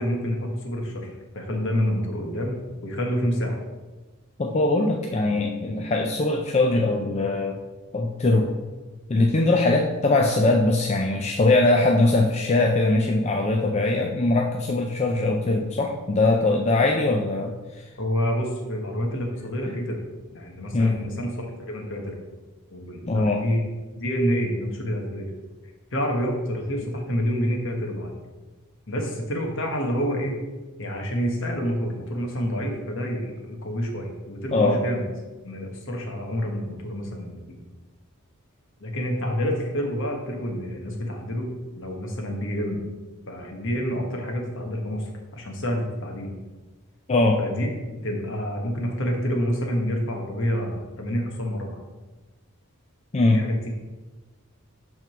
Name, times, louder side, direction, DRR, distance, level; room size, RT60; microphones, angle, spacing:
voice 1, 0.0-3.6 18.0-20.0 20.3-22.2 22.7-23.6 24.0-25.3 25.9-28.1 28.9-30.4 30.8-35.0 35.4-37.4 38.8-42.8 43.3-46.3 47.4-51.8 53.3-53.7, equal, 60° left, 2 dB, 1.2 m, -28 dB
voice 2, 4.4-7.6 7.9-8.6 9.1-17.9 19.6-19.8 20.7-21.0 23.1-23.4 34.5-34.8 47.1-47.4 53.1-53.4, left 2 dB, 30° left, 1 dB, 0.4 m, -21 dB
5.9 x 3.7 x 5.8 m, 1.2 s
head